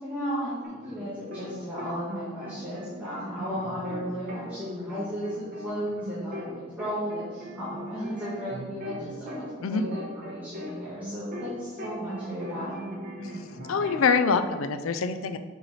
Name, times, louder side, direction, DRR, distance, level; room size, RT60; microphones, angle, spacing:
voice 1, 0.0-12.9, equal, 10° right, -11 dB, 1.5 m, -35 dB
sound 1, 0.6-1.5 1.8-6.5 6.8-11.5 11.8-14.4, equal, 45° right, 1.5 m, -39 dB
voice 2, 13.7-15.4, left 5 dB, 80° left, 10 dB, 0.5 m, -25 dB
5.7 x 5.6 x 4.2 m, 1.5 s
head